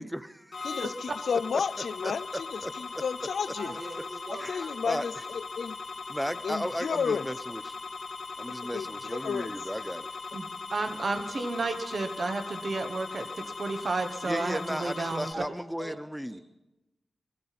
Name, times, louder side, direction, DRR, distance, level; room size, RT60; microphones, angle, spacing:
voice 1, 0.0-0.7 2.0-2.1 2.6-3.0 4.4-5.2 6.1-7.7 8.4-10.1 14.2-16.4, equal, ahead, 0.5 m, -35 dB
sound 1, 0.5-15.3, left 4 dB, 60° left, 1.4 m, -39 dB
voice 2, 0.6-3.7 4.3-5.1 5.6-5.8 6.4-7.3 8.7-9.5, left 6 dB, 80° left, 0.4 m, -32 dB
voice 3, 3.5-4.8 5.2-5.3 15.3-16.0 16.3-16.4, right 1 dB, 85° right, 5.3 m, -43 dB
voice 4, 10.3-13.3 13.6-15.2, right 3 dB, 50° right, 1.2 m, -32 dB
20.5 x 14.5 x 4.2 m
wide cardioid pair, 115°, 0 cm